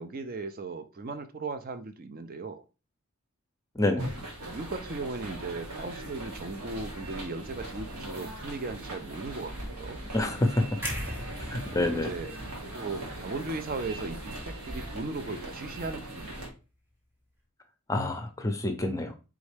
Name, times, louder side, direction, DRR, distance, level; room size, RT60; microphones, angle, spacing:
voice 1, 0.0-2.6 3.9-4.1 4.4-10.0 11.7-12.3 12.7-16.5, right 3 dB, 40° right, 9 dB, 0.4 m, -37 dB
voice 2, 3.7-4.1 10.1-10.6 11.4-12.1 17.9-19.1, left 1 dB, 15° left, 7 dB, 0.6 m, -27 dB
sound 1, 4.0-16.5, right 1 dB, 90° right, 1.6 m, -40 dB
sound 2, 10.8-14.8 15.2-15.4, left 1 dB, 10° right, 0.8 m, -40 dB
4.1 x 3.6 x 3.3 m, 0.31 s
head